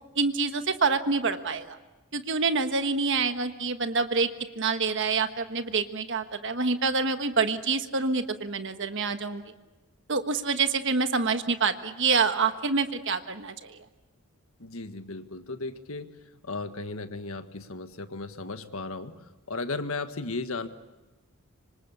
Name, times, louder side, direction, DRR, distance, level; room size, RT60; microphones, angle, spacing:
voice 1, 0.1-1.8 2.1-4.3 4.6-9.4 10.1-13.8, right 4 dB, 55° right, 8 dB, 1.4 m, -27 dB
voice 2, 14.6-16.1 16.4-20.7, left 3 dB, 70° left, 8 dB, 1.6 m, -35 dB
26.0 x 25.5 x 8.3 m, 1.1 s
head